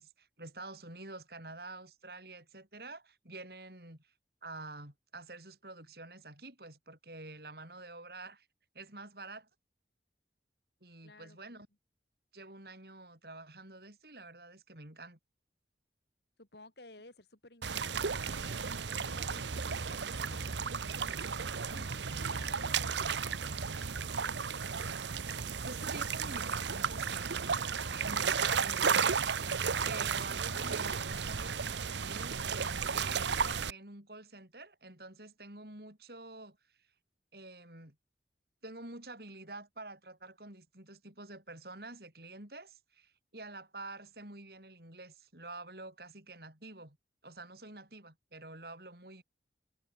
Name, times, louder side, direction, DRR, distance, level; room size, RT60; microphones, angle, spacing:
voice 1, 0.0-4.1 4.4-8.5 8.8-9.5 10.8-11.7 12.3-15.2 25.6-29.2 29.8-36.6 37.3-38.0 38.6-47.0 47.2-49.2, right 2 dB, 55° right, 5.2 m, -48 dB
voice 2, 11.0-11.6 16.4-21.2 21.7-24.3, left 2 dB, 65° left, 4.0 m, -56 dB
sound 1, 17.6-33.7, right 6 dB, 80° right, 0.9 m, -34 dB
head